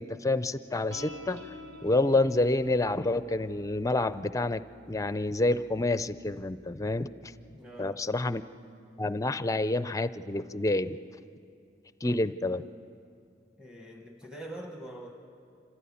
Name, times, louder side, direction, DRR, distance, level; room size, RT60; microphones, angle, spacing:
voice 1, 0.0-1.4 1.8-4.6 4.9-7.1 7.8-8.4 9.0-11.0 12.0-12.6, left 2 dB, 20° left, 13 dB, 0.5 m, -28 dB
sound 1, 0.9-7.6, left 1 dB, 80° right, 1.5 m, -50 dB
voice 2, 7.5-8.0 13.6-15.1, right 1 dB, 5° right, 2 dB, 1.3 m, -44 dB
26.5 x 15.5 x 8.6 m, 2.4 s
head